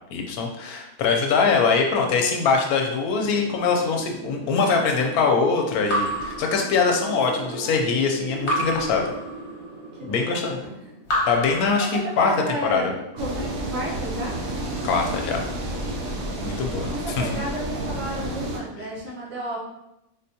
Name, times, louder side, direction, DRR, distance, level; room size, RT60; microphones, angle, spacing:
voice 1, 0.1-9.1 10.1-10.6 11.3-11.9 12.2-12.3 12.7-12.9 14.8-15.4 16.4-17.2, left 5 dB, 75° left, 2 dB, 1.0 m, -22 dB
Wind, 3.0-11.8, right 4 dB, 40° right, 0.9 m, -38 dB
Raindrop / Drip, 5.9-7.3 8.5-9.8 11.0-12.5, equal, 55° left, 1.0 m, -29 dB
voice 2, 7.0-7.8 10.0-10.8 11.8-11.9 12.2-12.9 13.2-13.4 13.7-14.4 16.1-16.3 16.9-19.6, right 1 dB, 85° right, -5 dB, 1.5 m, -33 dB
sound 1, 13.2-18.6, right 1 dB, 70° right, 1.0 m, -30 dB
3.9 x 2.2 x 2.7 m, 0.87 s
omnidirectional pair, 1.6 m